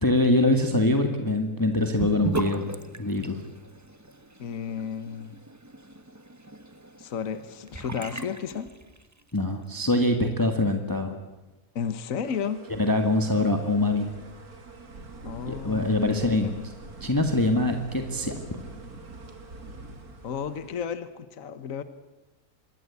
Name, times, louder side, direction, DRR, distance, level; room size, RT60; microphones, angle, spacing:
voice 1, 0.0-2.7 3.0-3.4 9.3-11.1 12.7-14.1 15.5-16.5 17.0-18.3, left 2 dB, 15° left, 5 dB, 1.8 m, -24 dB
Sink (filling or washing) / Bathtub (filling or washing), 2.0-9.3, right 2 dB, 15° right, 1.0 m, -38 dB
voice 2, 4.4-5.4 7.0-8.7 11.7-12.6 15.2-16.5 20.2-21.8, left 7 dB, 65° left, 12 dB, 1.5 m, -33 dB
sound 1, 12.2-20.8, right 3 dB, 80° right, 3.1 m, -44 dB
26.0 x 22.0 x 8.4 m, 1.1 s
omnidirectional pair, 1.6 m